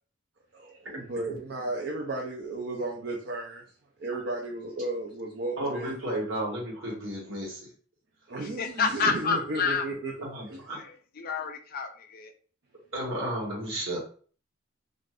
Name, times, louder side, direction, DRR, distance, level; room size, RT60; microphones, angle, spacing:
voice 1, 0.5-3.6 4.0-6.1 8.3-10.2 10.5-10.6, right 2 dB, 55° right, -1 dB, 0.5 m, -34 dB
voice 2, 5.6-7.6 10.2-10.8 12.9-14.0, right 1 dB, 70° right, -3 dB, 1.3 m, -33 dB
voice 3, 8.4-9.8 10.7-12.3, left 5 dB, 45° left, 5 dB, 0.4 m, -29 dB
2.5 x 2.5 x 3.3 m, 0.43 s
head